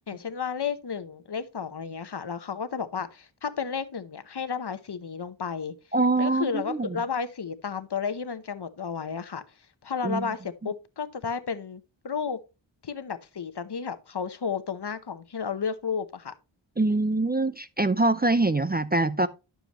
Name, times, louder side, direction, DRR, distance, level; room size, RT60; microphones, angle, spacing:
voice 1, 0.1-5.7 6.2-9.4 9.8-12.4 12.8-16.3, left 6 dB, 55° left, 0.9 m, -32 dB
voice 2, 5.9-6.9 10.0-10.3 16.8-19.3, right 2 dB, 20° right, 0.5 m, -24 dB
11.0 x 6.9 x 3.0 m
wide cardioid pair, 75°, 47 cm